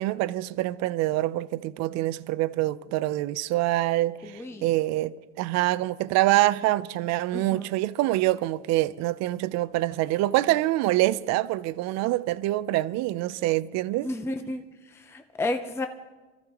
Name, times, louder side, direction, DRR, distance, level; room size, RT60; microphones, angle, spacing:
voice 1, 0.0-14.1, right 16 dB, 60° right, 0.5 m, -25 dB
voice 2, 4.2-4.7 7.3-7.6 14.0-14.6 14.9-15.9, left 2 dB, 10° left, 0.6 m, -32 dB
24.0 x 14.5 x 2.9 m
cardioid pair, 130°, 31 cm